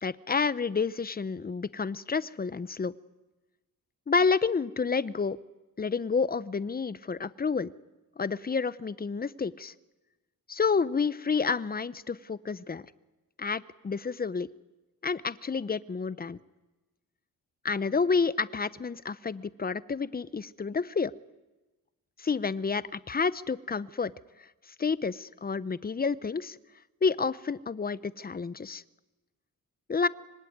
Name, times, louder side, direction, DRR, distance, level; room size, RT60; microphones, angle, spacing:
voice 1, 0.0-2.9 4.1-5.4 5.8-7.7 8.2-9.7 10.5-12.8 13.4-14.5 15.0-16.4 17.6-21.1 22.2-24.1 24.8-26.6 27.0-28.8 29.9-30.1, left 5 dB, 25° left, 17 dB, 0.8 m, -29 dB
24.5 x 24.5 x 9.5 m, 1.1 s
wide cardioid pair, 115°, 35 cm